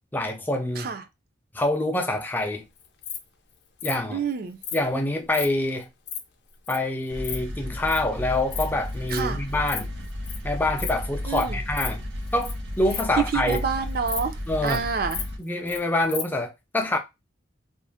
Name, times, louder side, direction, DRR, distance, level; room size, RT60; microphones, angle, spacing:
voice 1, 0.1-0.9 1.5-2.7 3.8-4.2 4.7-5.9 6.7-9.9 10.4-12.0 12.3-13.6 14.5-14.8 15.4-17.0, left 1 dB, 10° left, 0.5 m, -26 dB
Insect, 2.8-3.2 3.8-4.0 4.6-4.8 5.3-5.5 5.8-6.2 6.7-6.8 7.0-7.4 7.9-8.0 8.4-8.6 8.9-9.2 9.5-9.8 10.0-10.4 10.8-11.0 11.3-11.4 11.7-11.9 12.3-12.5 12.8-13.7 14.1-14.2 14.5-14.8 15.1-15.8 16.1-16.2, left 8 dB, 60° left, 0.5 m, -33 dB
voice 2, 4.1-4.6 9.1-9.4 11.3-11.6 13.3-14.4 14.6-15.3, right 5 dB, 50° right, 0.4 m, -28 dB
sound 1, 7.1-15.4, left 1 dB, 75° right, 1.0 m, -33 dB
2.5 x 2.1 x 3.4 m
head